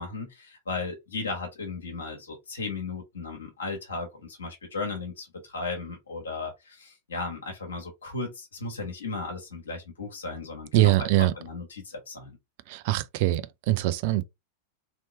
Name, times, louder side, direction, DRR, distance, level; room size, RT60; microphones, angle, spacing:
voice 1, 0.0-12.4, left 3 dB, 70° left, 1.2 m, -36 dB
voice 2, 10.7-11.3 12.7-14.2, right 16 dB, 50° right, 0.4 m, -23 dB
3.0 x 2.9 x 4.0 m
figure-of-eight pair, 90°, 0 cm